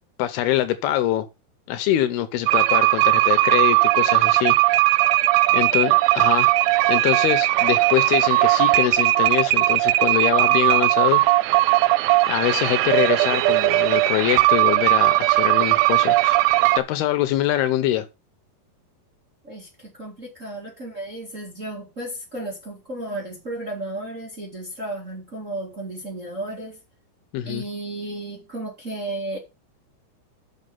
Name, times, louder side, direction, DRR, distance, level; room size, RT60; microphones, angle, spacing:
voice 1, 0.2-1.3 1.7-4.6 5.5-6.5 6.9-11.2 12.3-16.4 16.8-18.1 27.3-27.6, left 13 dB, 80° left, 2.6 m, -24 dB
sound 1, 2.5-16.8, right 19 dB, 85° right, 2.8 m, -18 dB
voice 2, 19.4-26.8 27.4-29.4, right 1 dB, 25° right, 1.7 m, -33 dB
6.6 x 5.6 x 6.9 m
omnidirectional pair, 4.8 m